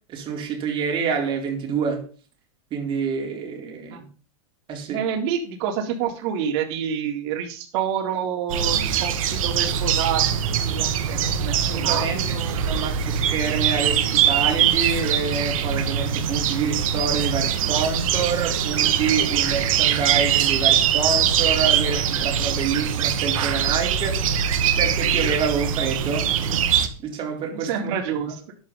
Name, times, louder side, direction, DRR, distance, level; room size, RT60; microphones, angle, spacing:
voice 1, 0.1-2.0 2.7-4.1 4.7-5.0 11.5-24.2 24.8-28.3, right 5 dB, 25° right, 4.3 m, -27 dB
voice 2, 4.9-10.3 10.5-12.5 27.5-28.4, right 8 dB, 50° right, 3.7 m, -28 dB
sound 1, 8.5-26.9, right 8 dB, 65° right, 2.2 m, -22 dB
12.5 x 11.0 x 4.2 m
hypercardioid pair, 140°, 18 cm